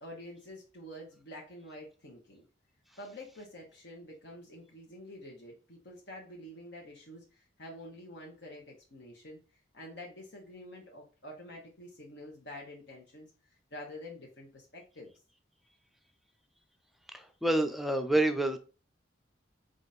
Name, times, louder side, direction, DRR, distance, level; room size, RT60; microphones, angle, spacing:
voice 1, 0.0-2.4 3.0-9.4 9.7-13.3 13.7-15.1, left 1 dB, 60° left, -2 dB, 1.2 m, -48 dB
voice 2, 17.1-18.6, right 1 dB, ahead, 6 dB, 0.5 m, -28 dB
4.9 x 2.6 x 4.1 m, 0.34 s
head